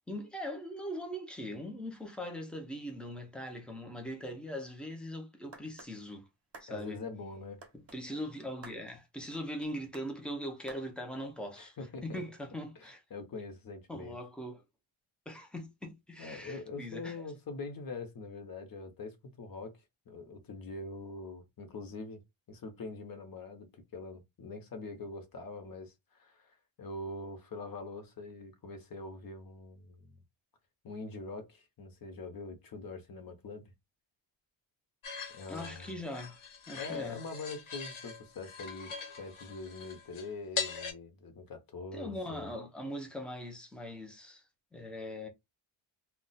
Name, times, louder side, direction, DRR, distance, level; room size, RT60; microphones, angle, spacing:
voice 1, 0.1-6.3 6.6-7.0 7.7-11.8 12.0-13.0 13.9-14.6 15.3-17.3 35.5-36.4 36.7-37.2 41.9-44.4 44.7-45.3, equal, ahead, 0.4 m, -41 dB
sound 1, 5.5-5.9 6.5-6.7 7.6-8.0 8.6-8.8 9.6-10.1 10.7-10.9, right 3 dB, 30° right, 0.7 m, -51 dB
voice 2, 6.7-7.6 11.6-12.2 12.8-14.2 16.2-19.7 20.1-22.2 22.5-23.7 23.9-30.2 30.8-33.6 35.3-36.0 36.7-38.9 39.2-42.5, left 3 dB, 45° left, 0.7 m, -43 dB
sound 2, 35.0-40.9, left 5 dB, 70° left, 1.0 m, -41 dB
2.3 x 2.1 x 3.9 m
wide cardioid pair, 160°, 50 cm